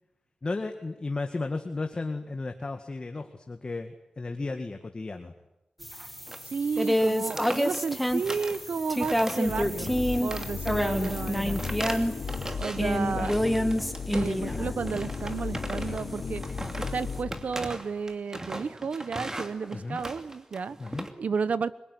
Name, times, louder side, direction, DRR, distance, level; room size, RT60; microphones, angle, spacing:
voice 1, 0.4-5.3 13.2-13.3 19.7-20.0 20.8-21.1, left 3 dB, 40° left, 5 dB, 1.9 m, -34 dB
sound 1, 5.8-12.5 12.8-15.4 15.8-17.2, equal, ahead, 2.1 m, -29 dB
sound 2, 6.3-6.5 6.8-6.9 7.2-8.6 9.0-9.6 9.9-12.9 13.2-14.5 14.8-21.1, right 1 dB, 25° right, 2.6 m, -38 dB
voice 2, 6.5-9.9 10.2-11.6 12.6-13.3 14.1-16.4 16.9-20.8 21.2-21.8, right 5 dB, 80° right, 15 dB, 1.1 m, -32 dB
sound 3, 9.4-17.8, left 5 dB, 80° left, 1.0 m, -35 dB
25.5 x 22.5 x 9.9 m, 0.92 s
wide cardioid pair, 100°, 2 cm